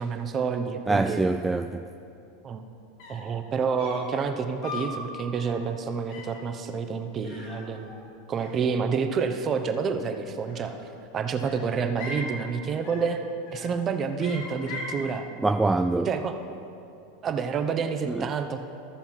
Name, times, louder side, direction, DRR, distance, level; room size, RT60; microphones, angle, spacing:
voice 1, 0.0-1.2 2.4-2.6 3.1-7.9 8.3-10.8 11.1-13.2 13.5-15.3 16.1-16.3 17.2-18.7, right 5 dB, 30° right, 7 dB, 0.9 m, -28 dB
voice 2, 0.9-1.8 15.4-16.1 18.1-18.3, right 2 dB, 10° right, 7 dB, 0.3 m, -24 dB
sound 1, 2.7-2.8 3.0-3.3 3.8-4.2 4.6-5.0 5.4-5.7 6.1-6.4 7.2-8.1 8.4-9.1 10.3-10.9 11.4-12.3 12.8-13.2 13.5-13.8 14.2-15.0, left 2 dB, 60° left, 2.7 m, -40 dB
13.0 x 7.0 x 5.8 m, 2.8 s
hypercardioid pair, 85°, 0 cm